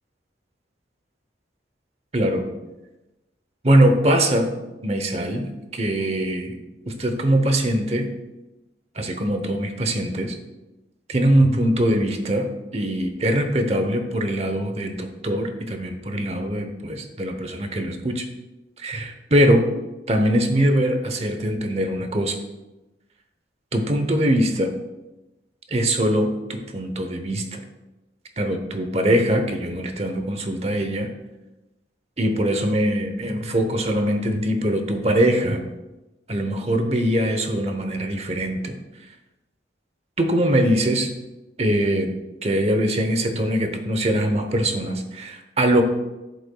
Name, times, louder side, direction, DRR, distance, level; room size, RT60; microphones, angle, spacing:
voice 1, 2.1-2.4 3.6-4.5 4.8-6.6 6.9-8.1 9.0-10.4 11.1-18.2 18.8-19.6 20.1-22.3 23.7-24.7 25.7-26.3 26.7-27.6 28.4-31.1 32.2-35.6 36.3-38.7 40.2-41.1 41.6-42.1 42.4-45.8, right 1 dB, 35° right, 6 dB, 0.8 m, -22 dB
10.5 x 8.1 x 2.3 m, 1.0 s
head